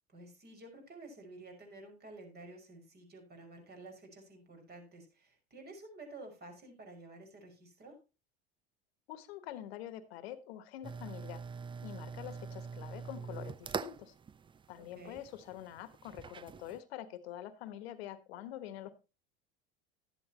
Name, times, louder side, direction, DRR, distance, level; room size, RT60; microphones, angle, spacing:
voice 1, 0.1-8.0 14.8-15.2, right 2 dB, 30° right, 4 dB, 6.0 m, -51 dB
voice 2, 9.1-11.5 11.8-14.1 14.7-18.9, left 12 dB, 75° left, 13 dB, 1.4 m, -46 dB
sound 1, 10.8-16.8, right 5 dB, 15° right, 0.5 m, -44 dB
12.5 x 11.0 x 3.0 m, 0.29 s
hypercardioid pair, 90°, 31 cm